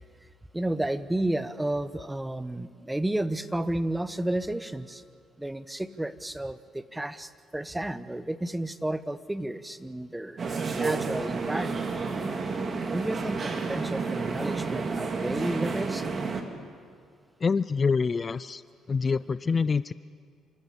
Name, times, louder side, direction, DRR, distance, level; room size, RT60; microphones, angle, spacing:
voice 1, 0.5-5.0 5.4-11.9 12.9-16.0, right 1 dB, 10° right, 14 dB, 1.1 m, -32 dB
sound 1, 10.4-16.4, right 4 dB, 45° right, 2.5 m, -30 dB
voice 2, 17.4-18.6 18.9-19.9, left 5 dB, 40° left, 17 dB, 0.5 m, -26 dB
29.0 x 13.5 x 8.7 m, 2.1 s
hypercardioid pair, 55°, 0 cm